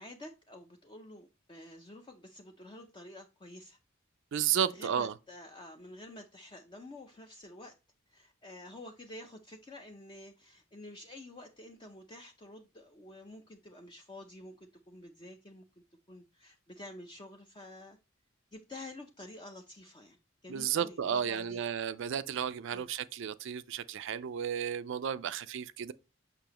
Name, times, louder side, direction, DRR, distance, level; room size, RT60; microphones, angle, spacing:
voice 1, 0.0-3.8 4.6-7.7 8.1-15.6 16.1-18.0 18.5-20.2 20.4-21.6 22.7-22.9, left 1 dB, 25° left, 0.6 m, -49 dB
voice 2, 4.3-5.1 20.5-25.9, right 8 dB, 65° right, 0.4 m, -33 dB
6.8 x 5.6 x 2.9 m
head